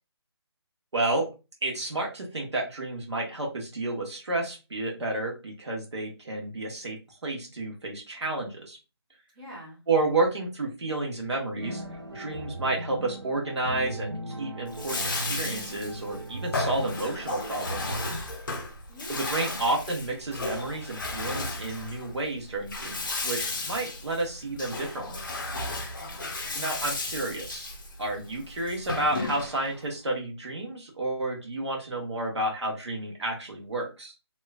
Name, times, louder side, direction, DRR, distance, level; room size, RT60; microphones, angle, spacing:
voice 1, 0.9-1.3 1.6-8.8 9.9-11.8 12.1-18.0 19.1-25.2 26.5-27.7 28.0-34.1, right 2 dB, 80° right, 0 dB, 1.5 m, -31 dB
voice 2, 9.3-9.8 18.9-19.6 26.0-26.8, equal, 20° right, -7 dB, 1.4 m, -46 dB
sound 1, 11.6-18.2, right 1 dB, 60° right, 1.0 m, -37 dB
Bathtub (filling or washing), 14.7-29.8, left 3 dB, 50° left, 0.6 m, -34 dB
3.3 x 3.0 x 2.4 m, 0.29 s
hypercardioid pair, 175°, 14 cm